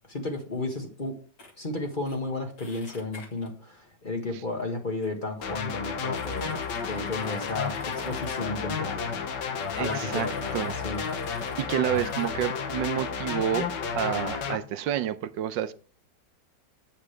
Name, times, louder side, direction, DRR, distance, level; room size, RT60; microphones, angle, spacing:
voice 1, 0.1-1.2 1.6-6.5 6.9-9.1 9.4-9.5 9.8-11.0, left 2 dB, 30° left, 1.4 m, -33 dB
sound 1, 1.4-1.5 2.1-2.2 2.6-3.5 4.5-4.6 5.0-5.1 5.5-5.6 5.9-8.5 9.3-11.7 11.9-12.5, left 3 dB, 50° left, 2.3 m, -50 dB
sound 2, 5.4-14.6, left 6 dB, 75° left, 1.7 m, -32 dB
voice 2, 9.8-10.8 11.6-15.7, right 11 dB, 80° right, 1.3 m, -29 dB
8.5 x 8.3 x 3.3 m
omnidirectional pair, 2.0 m